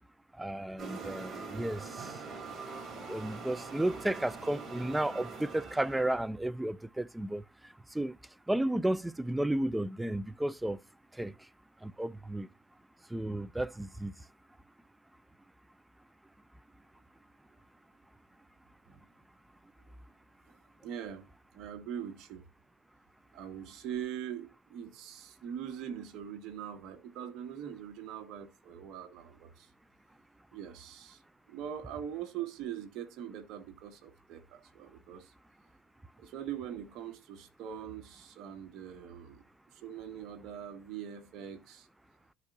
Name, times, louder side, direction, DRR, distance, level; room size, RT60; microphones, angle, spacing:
voice 1, 0.4-2.1 3.1-7.4 7.9-8.2 8.5-10.8 11.2-11.3 11.8-12.5 13.1-14.1, right 1 dB, 5° right, 0.4 m, -33 dB
sound 1, 0.8-6.2, right 4 dB, 35° right, 3.7 m, -43 dB
voice 2, 20.8-22.4 23.3-29.7 30.5-31.2 31.5-35.3 36.2-39.4 39.7-41.9, right 9 dB, 65° right, 1.5 m, -42 dB
12.5 x 4.4 x 2.6 m
supercardioid pair, 95°, 0 cm